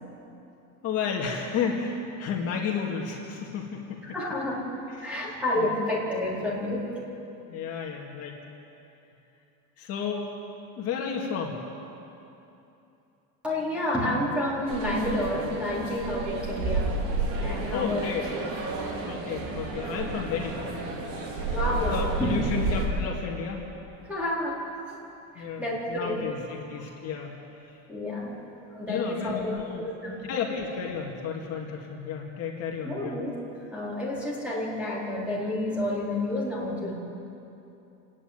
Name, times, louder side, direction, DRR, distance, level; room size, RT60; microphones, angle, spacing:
voice 1, 0.8-4.0 5.0-5.7 7.5-8.4 9.8-10.3 10.8-11.6 17.7-18.2 19.1-20.6 21.9-23.6 25.4-27.4 28.9-29.8 30.3-33.1, left 6 dB, 40° left, -1 dB, 2.2 m, -32 dB
voice 2, 4.0-4.6 5.0-7.0 13.4-16.9 17.4-18.2 21.5-22.4 24.0-24.6 25.3-26.2 26.7-26.8 27.9-28.4 28.7-30.3 32.8-33.4 33.7-36.9, left 1 dB, 5° right, -7 dB, 4.2 m, -30 dB
sound 1, 14.7-22.9, right 3 dB, 90° right, 5.1 m, -31 dB
28.0 x 10.0 x 9.5 m, 2.8 s
cardioid pair, 170°, 36 cm